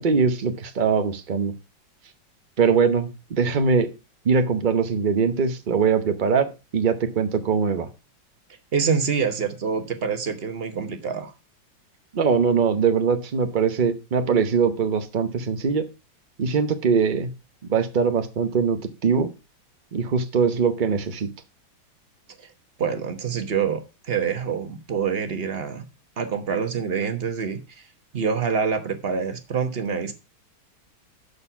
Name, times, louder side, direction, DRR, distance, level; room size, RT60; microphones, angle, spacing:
voice 1, 0.0-1.5 2.6-3.9 4.2-7.9 12.1-15.9 16.4-17.3 17.7-19.3 19.9-21.3, right 5 dB, 80° right, 0.4 m, -22 dB
voice 2, 8.7-11.3 22.4-22.5 22.8-25.8 26.2-27.8 28.1-30.1, right 6 dB, 40° right, 1.0 m, -26 dB
12.0 x 4.4 x 5.6 m
omnidirectional pair, 2.2 m